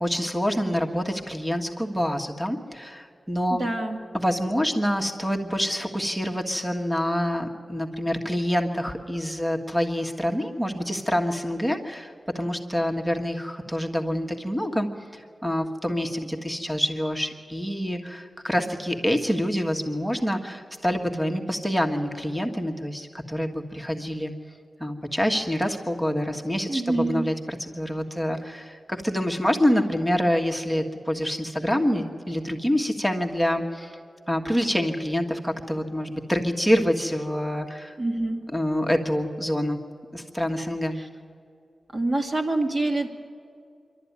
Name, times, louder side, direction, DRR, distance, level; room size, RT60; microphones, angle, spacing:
voice 1, 0.0-3.7 4.1-24.3 24.8-34.0 34.3-37.9 38.5-39.8 40.1-41.0, equal, ahead, 3 dB, 1.6 m, -26 dB
voice 2, 3.5-4.0 26.7-27.3 38.0-38.4 41.0-41.1 41.9-43.1, right 2 dB, 45° right, 3 dB, 2.2 m, -26 dB
26.0 x 12.5 x 9.6 m, 2.4 s
wide cardioid pair, 125°, 0 cm